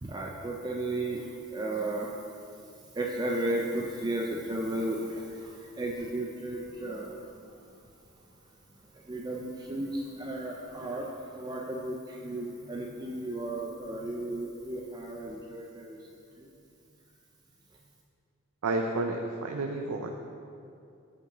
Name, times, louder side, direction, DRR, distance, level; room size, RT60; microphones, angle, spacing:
voice 1, 0.0-2.1 3.0-7.1 9.1-11.1 11.3-16.0, right 1 dB, 20° right, -1 dB, 0.5 m, -34 dB
voice 2, 18.6-20.1, right 2 dB, 90° right, 3 dB, 0.5 m, -30 dB
9.5 x 8.3 x 3.0 m, 2.5 s
head